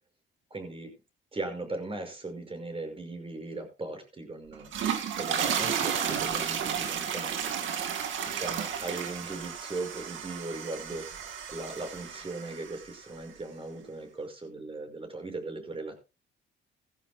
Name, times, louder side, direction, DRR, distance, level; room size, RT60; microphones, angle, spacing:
voice 1, 0.5-0.9 1.3-7.7 8.3-16.0, right 2 dB, 30° right, 5 dB, 5.8 m, -38 dB
sound 1, 4.5-12.9, right 8 dB, 75° right, 2.2 m, -33 dB
17.5 x 15.0 x 2.2 m, 0.29 s
cardioid pair, 90°, 20 cm